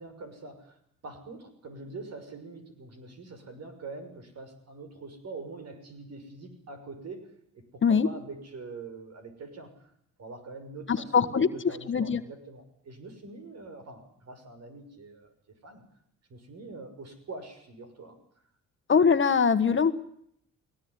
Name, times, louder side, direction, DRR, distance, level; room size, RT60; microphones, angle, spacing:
voice 1, 0.0-9.7 10.2-15.8 16.3-18.2, right 3 dB, 60° right, 8 dB, 6.3 m, -44 dB
voice 2, 10.9-11.5 11.9-12.2 18.9-20.0, left 6 dB, 40° left, 10 dB, 1.6 m, -22 dB
20.5 x 18.5 x 9.8 m, 0.69 s
cardioid pair, 90°, 30 cm